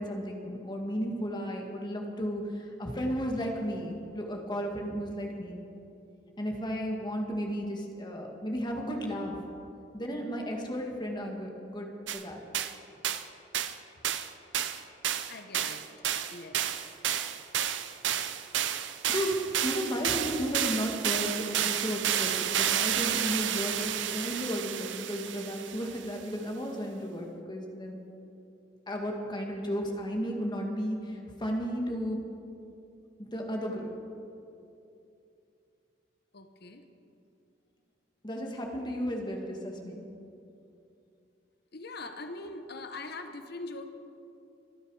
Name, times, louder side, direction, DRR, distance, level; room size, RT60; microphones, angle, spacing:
voice 1, 0.0-5.6 6.4-9.4 9.9-12.4 19.1-28.0 28.9-32.2 33.2-33.9 38.2-40.0, equal, 25° left, 1 dB, 2.0 m, -34 dB
sound 1, 12.1-12.2 12.5-12.7 13.0-13.2 13.5-13.7 14.0-14.3 14.5-26.0, right 10 dB, 80° right, 0.7 m, -31 dB
voice 2, 15.3-15.8 16.3-16.9 36.3-36.8 41.7-43.8, left 2 dB, 60° left, 7 dB, 1.1 m, -42 dB
26.5 x 10.0 x 4.9 m, 2.7 s
head